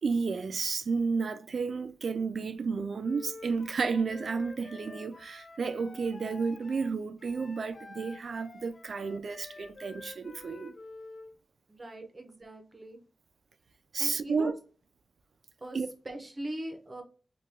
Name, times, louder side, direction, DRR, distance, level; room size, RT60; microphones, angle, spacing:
voice 1, 0.0-10.7 13.9-14.5 15.7-15.9, right 5 dB, 60° right, 0.3 m, -32 dB
Wind instrument woodwind instrument, 3.0-11.4, left 3 dB, 50° left, 0.4 m, -49 dB
voice 2, 11.7-13.0 14.0-14.5 15.6-15.8 16.0-17.0, right 1 dB, 25° right, 0.8 m, -40 dB
2.9 x 2.3 x 3.4 m
wide cardioid pair, 120°, 0 cm